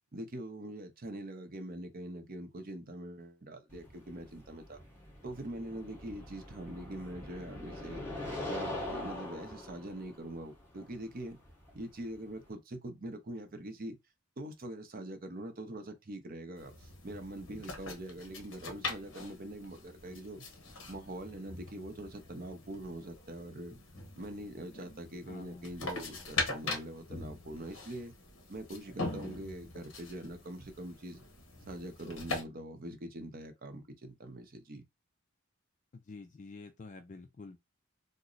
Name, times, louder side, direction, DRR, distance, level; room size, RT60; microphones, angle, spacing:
voice 1, 0.1-4.8 5.2-8.1 8.5-11.4 11.7-14.0 14.4-20.5 20.9-23.8 24.2-28.1 28.5-31.2 31.7-34.8, right 1 dB, 40° right, 0.6 m, -43 dB
sound 1, 3.7-12.5, left 1 dB, 10° left, 1.1 m, -43 dB
sound 2, 16.6-32.4, left 3 dB, 60° left, 1.0 m, -42 dB
voice 2, 25.3-25.7 35.9-37.6, left 3 dB, 35° left, 0.3 m, -48 dB
3.0 x 2.0 x 3.8 m
head